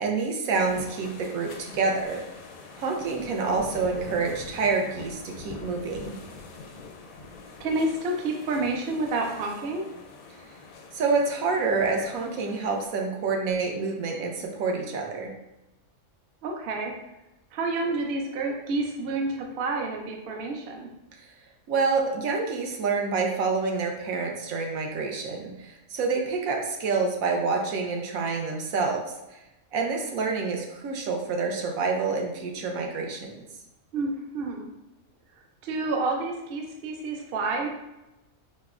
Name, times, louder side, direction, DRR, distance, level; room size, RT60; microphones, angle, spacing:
voice 1, 0.0-2.2 2.8-6.2 10.9-15.3 21.7-29.4 29.7-33.5, right 4 dB, 80° right, 2 dB, 1.0 m, -27 dB
sound 1, 0.5-12.9, left 3 dB, 85° left, 1.0 m, -44 dB
voice 2, 7.6-9.8 16.4-16.9 17.5-20.9 33.9-34.7 35.6-37.7, right 2 dB, 60° right, 2 dB, 0.6 m, -29 dB
4.8 x 2.2 x 2.4 m, 0.97 s
omnidirectional pair, 1.5 m